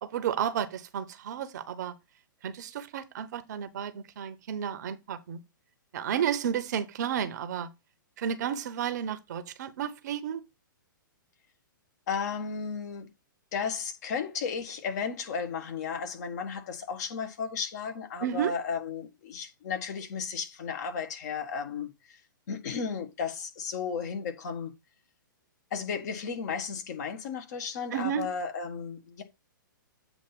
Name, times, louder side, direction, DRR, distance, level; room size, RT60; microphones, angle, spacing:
voice 1, 0.0-1.9 2.4-5.4 5.9-7.7 8.2-10.4 18.2-18.5 27.9-28.3, right 9 dB, 55° right, 0.9 m, -32 dB
voice 2, 12.1-13.1 13.5-22.2 22.5-24.7 25.7-29.2, left 6 dB, 55° left, 1.5 m, -34 dB
8.0 x 2.8 x 5.9 m
hypercardioid pair, 120°, 11 cm